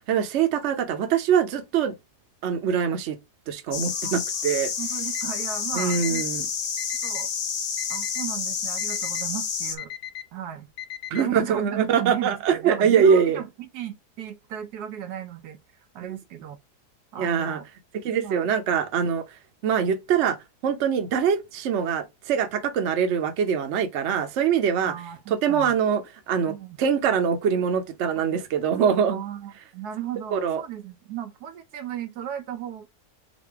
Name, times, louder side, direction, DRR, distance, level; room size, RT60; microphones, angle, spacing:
voice 1, 0.1-1.9 2.4-3.2 3.5-4.7 5.7-6.5 11.1-13.4 16.0-16.2 17.2-17.6 18.0-19.2 19.6-20.4 20.6-24.9 25.3-29.2 30.3-30.6, right 7 dB, 55° right, 0.9 m, -23 dB
sound 1, 3.7-9.8, left 7 dB, 55° left, 1.0 m, -29 dB
voice 2, 4.8-6.3 7.0-7.3 7.9-9.9 10.3-10.7 11.2-15.6 15.9-16.6 17.1-17.7 18.2-18.5 24.8-25.7 26.5-26.8 29.1-32.9, right 10 dB, 75° right, 1.1 m, -35 dB
Alarm, 5.1-5.2 5.8-6.3 6.8-7.3 7.8-8.3 8.8-9.2 9.8-10.3 10.8-11.2, left 11 dB, 80° left, 1.2 m, -37 dB
4.1 x 2.6 x 4.5 m
omnidirectional pair, 1.7 m